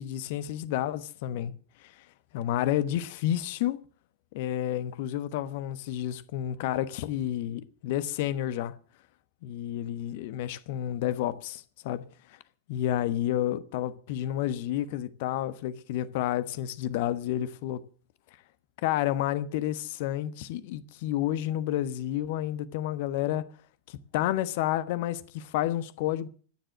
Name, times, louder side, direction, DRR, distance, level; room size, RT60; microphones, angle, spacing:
voice 1, 0.0-1.5 1.8-2.0 2.3-3.8 4.3-8.7 9.4-12.4 12.7-17.8 18.8-23.5 23.9-26.3, left 12 dB, 50° left, 1.1 m, -30 dB
14.5 x 10.5 x 7.5 m
figure-of-eight pair, 90°, 0 cm